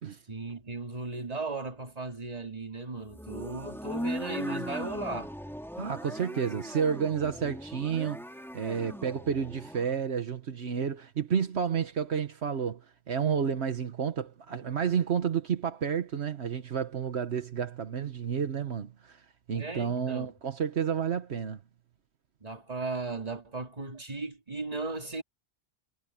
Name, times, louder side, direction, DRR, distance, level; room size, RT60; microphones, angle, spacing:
voice 1, 0.3-5.3 19.5-20.3 22.4-25.2, right 3 dB, 35° right, 2.4 m, -36 dB
sound 1, 3.1-9.9, equal, ahead, 3.2 m, -39 dB
voice 2, 5.8-8.2 8.5-12.8 13.1-19.2 19.5-21.6, right 7 dB, 75° right, 1.4 m, -30 dB
omnidirectional pair, 1.1 m